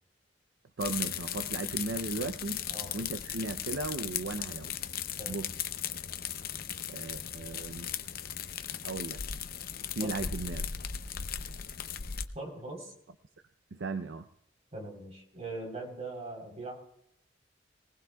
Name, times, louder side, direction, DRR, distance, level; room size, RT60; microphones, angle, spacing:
sound 1, 0.8-12.2, left 8 dB, 50° left, 0.7 m, -37 dB
voice 1, 0.8-2.6 2.9-4.7 5.3-5.5 6.9-7.9 8.8-9.2 10.0-10.7 13.7-14.3, right 3 dB, 70° right, 9 dB, 0.6 m, -36 dB
voice 2, 12.3-12.9 14.7-16.9, right 2 dB, 35° right, 1 dB, 3.7 m, -41 dB
20.0 x 19.5 x 2.3 m, 0.79 s
head